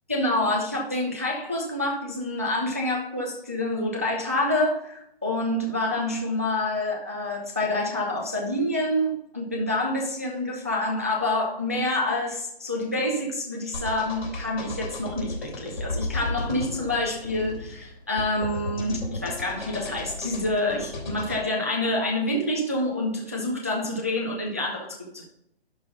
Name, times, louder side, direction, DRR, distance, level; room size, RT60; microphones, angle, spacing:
voice 1, 0.1-25.2, left 1 dB, 15° right, -1 dB, 0.5 m, -27 dB
sound 1, 13.7-21.4, left 2 dB, 50° left, 3.3 m, -34 dB
11.5 x 4.0 x 3.9 m, 0.76 s
hypercardioid pair, 175°, 31 cm